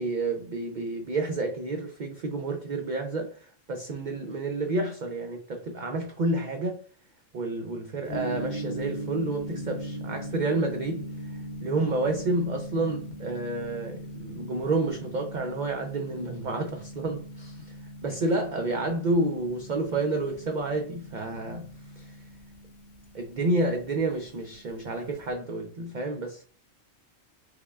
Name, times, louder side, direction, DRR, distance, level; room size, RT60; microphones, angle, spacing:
voice 1, 0.0-6.8 7.3-11.1 11.6-17.6 18.0-21.7 22.0-22.1 23.1-26.4, right 2 dB, 75° right, 0.4 m, -29 dB
Gong, 8.1-25.3, equal, 60° left, 1.0 m, -40 dB
4.6 x 2.1 x 2.3 m
omnidirectional pair, 1.3 m